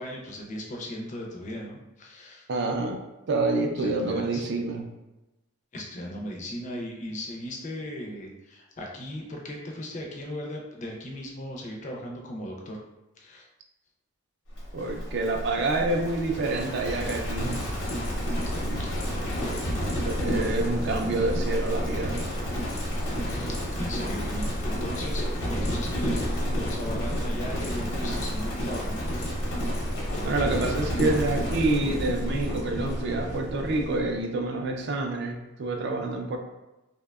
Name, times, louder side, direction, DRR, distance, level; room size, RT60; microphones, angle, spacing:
voice 1, 0.0-2.4 3.7-4.6 5.7-12.8 13.2-13.5 18.4-18.9 22.9-29.1 29.5-29.6, left 1 dB, 35° left, 0 dB, 0.4 m, -37 dB
voice 2, 2.5-3.0 3.3-4.8 14.7-17.5 18.6-18.9 20.1-22.3 30.2-36.4, right 2 dB, 50° right, 3 dB, 0.3 m, -27 dB
Livestock farm animals working animals, 14.6-34.2, equal, 85° left, 0.7 m, -30 dB
2.6 x 2.1 x 2.3 m, 1.0 s
head